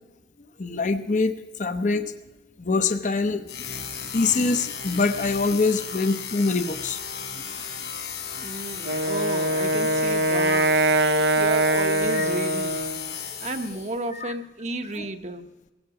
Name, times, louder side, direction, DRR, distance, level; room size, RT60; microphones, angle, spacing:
voice 1, 0.6-2.1 2.6-3.5 4.1-7.0 10.3-10.7 11.7-11.8 12.1-12.2 14.1-14.3 15.0-15.1, left 3 dB, 45° left, 9 dB, 0.7 m, -24 dB
sound 1, 3.5-14.0, left 7 dB, 75° left, 3.8 m, -35 dB
voice 2, 8.3-10.7 11.1-12.9 13.4-15.5, right 2 dB, 40° right, 6 dB, 0.9 m, -33 dB
Wind instrument woodwind instrument, 8.8-13.1, right 2 dB, 70° right, 0.7 m, -23 dB
17.5 x 16.0 x 4.9 m, 1.1 s
head